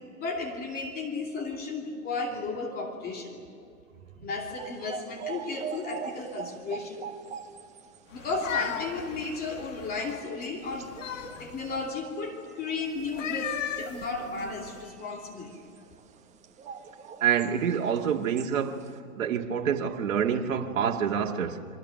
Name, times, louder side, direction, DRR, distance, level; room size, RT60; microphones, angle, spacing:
voice 1, 0.2-3.4 4.2-7.0 8.1-11.0 11.4-15.6, left 3 dB, 20° left, 2.8 m, -34 dB
sound 1, 4.5-19.0, right 7 dB, 15° right, 1.2 m, -44 dB
sound 2, 8.1-10.2 10.7-11.9 13.0-14.8, left 8 dB, 60° left, 1.8 m, -36 dB
voice 2, 17.2-18.9 19.2-21.7, right 8 dB, 65° right, 2.0 m, -27 dB
29.5 x 24.0 x 6.5 m
hypercardioid pair, 135°, 42 cm